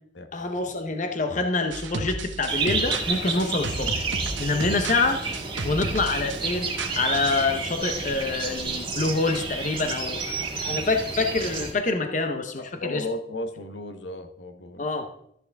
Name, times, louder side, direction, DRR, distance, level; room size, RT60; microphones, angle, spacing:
voice 1, 0.3-4.1 4.4-5.2 5.6-13.0 14.8-15.1, left 3 dB, 45° left, 6 dB, 0.8 m, -26 dB
sound 1, 1.7-7.5, right 3 dB, 90° right, 0.9 m, -34 dB
sound 2, 2.5-11.7, right 4 dB, 25° right, 1.9 m, -30 dB
voice 2, 12.6-14.8, left 1 dB, 80° left, 7 dB, 1.2 m, -34 dB
13.0 x 8.5 x 3.5 m, 0.71 s
head